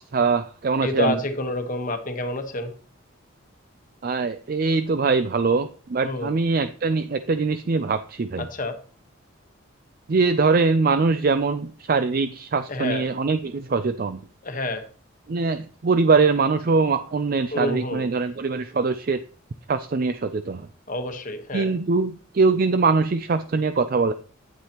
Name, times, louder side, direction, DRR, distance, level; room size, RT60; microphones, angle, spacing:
voice 1, 0.0-1.2 4.0-8.5 10.1-14.2 15.3-19.2 19.7-20.7 21.5-24.1, right 4 dB, 45° right, 11 dB, 0.4 m, -22 dB
voice 2, 0.8-2.7 6.0-6.3 8.4-8.8 12.7-13.1 14.4-14.9 17.5-18.1 20.9-21.7, left 1 dB, 40° left, 7 dB, 1.2 m, -28 dB
9.5 x 8.8 x 2.9 m, 0.41 s
head